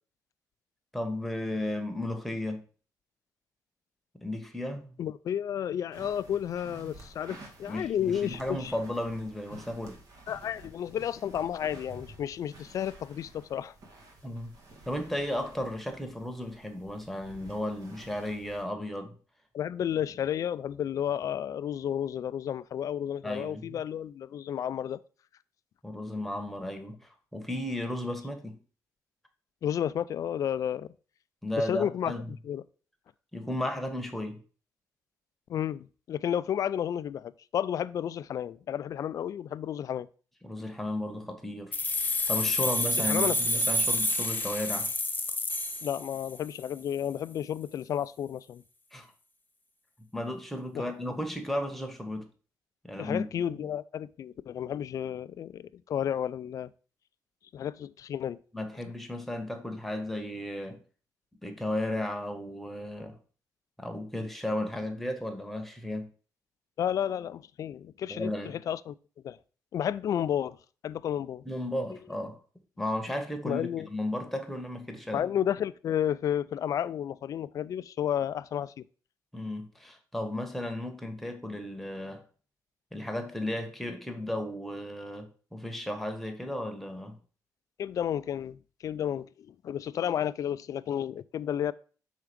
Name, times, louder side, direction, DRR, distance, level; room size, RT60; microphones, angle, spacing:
voice 1, 0.9-2.6 4.2-5.0 7.6-10.0 14.2-14.6 14.9-19.1 23.2-23.8 25.8-27.0 27.3-28.6 31.4-32.3 33.3-34.4 40.4-41.8 42.3-44.9 48.9-49.1 50.0-52.3 52.8-53.6 58.5-60.8 61.4-63.2 63.8-66.1 68.1-68.6 71.4-72.4 72.8-75.2 79.3-82.2 82.9-87.2, left 1 dB, ahead, 1.2 m, -34 dB
voice 2, 5.0-8.7 10.3-13.7 19.5-25.0 29.6-30.9 31.6-32.1 32.5-32.6 35.5-40.1 43.0-43.4 45.8-48.6 50.7-50.8 53.0-56.7 57.5-58.4 66.8-68.9 69.2-69.4 69.7-70.6 70.8-71.5 73.4-73.9 75.1-78.8 87.8-91.7, left 9 dB, 55° left, 0.3 m, -32 dB
sound 1, 5.9-18.6, right 2 dB, 60° right, 1.5 m, -51 dB
sound 2, 41.7-46.5, left 1 dB, 25° left, 0.8 m, -29 dB
5.8 x 3.7 x 5.1 m
cardioid pair, 105°, 7 cm